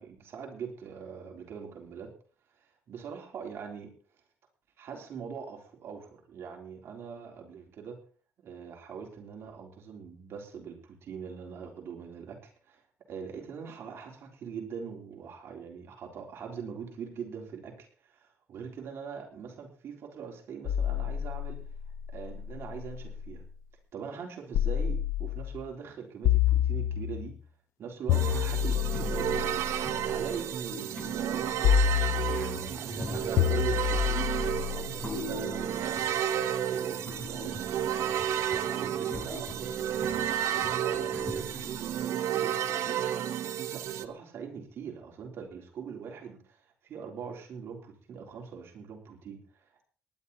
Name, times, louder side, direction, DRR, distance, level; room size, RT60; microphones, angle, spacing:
voice 1, 0.0-2.1 2.9-3.9 4.8-8.0 8.4-12.8 13.1-21.7 22.1-23.4 23.9-27.3 27.8-29.7 30.0-36.0 36.7-37.6 38.6-40.1 40.5-43.1 43.7-49.8, right 6 dB, 60° right, 0 dB, 3.8 m, -42 dB
sound 1, 20.7-23.4 24.5-25.6 26.2-27.4 28.1-30.3 31.6-32.7 33.4-35.5, left 10 dB, 90° left, 0.9 m, -28 dB
sound 2, 28.1-44.0, right 10 dB, 90° right, 1.1 m, -32 dB
sound 3, 28.2-42.0, left 2 dB, 30° left, 4.5 m, -44 dB
19.0 x 11.0 x 4.2 m, 0.43 s
cardioid pair, 145°, 5 cm